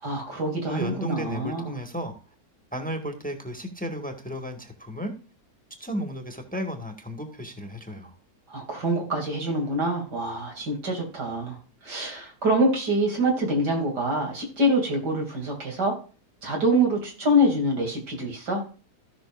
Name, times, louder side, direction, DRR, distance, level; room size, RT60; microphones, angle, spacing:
voice 1, 0.0-1.8 8.5-11.6 11.8-15.9 16.4-18.6, equal, 90° right, 1 dB, 3.5 m, -25 dB
voice 2, 0.7-2.1 2.7-5.1 5.8-8.1, equal, 5° left, 4 dB, 1.6 m, -34 dB
16.0 x 6.1 x 2.6 m, 0.37 s
omnidirectional pair, 1.7 m